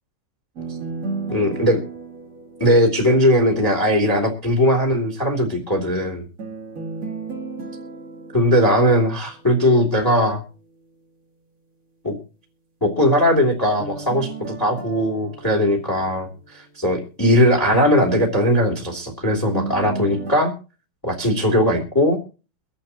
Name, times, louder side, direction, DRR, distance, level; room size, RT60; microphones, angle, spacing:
sound 1, 0.6-3.6 6.4-9.6 13.8-16.9 19.5-20.3, right 4 dB, 50° right, 0.9 m, -34 dB
voice 1, 1.3-1.8 2.6-6.2 8.3-10.4 12.0-12.2 12.8-20.5 21.0-22.2, equal, 5° left, 1 dB, 2.2 m, -19 dB
24.5 x 8.7 x 3.0 m, 0.35 s
omnidirectional pair, 5.1 m